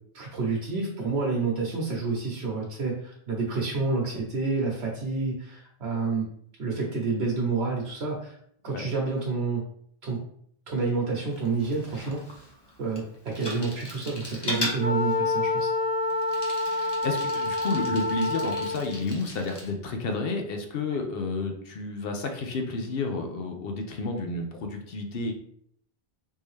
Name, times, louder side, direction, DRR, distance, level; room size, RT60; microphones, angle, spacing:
voice 1, 0.1-6.3 6.6-8.4 8.6-9.6 10.0-10.2 10.7-12.4 12.8-15.7, right 4 dB, 85° right, -2 dB, 1.1 m, -29 dB
Bicycle, 11.3-19.7, left 1 dB, 30° left, 0.6 m, -38 dB
Wind instrument woodwind instrument, 14.8-18.9, left 3 dB, 15° right, 0.7 m, -27 dB
voice 2, 16.5-25.3, left 3 dB, 65° left, 4 dB, 0.8 m, -31 dB
3.7 x 2.7 x 3.1 m, 0.67 s
omnidirectional pair, 1.1 m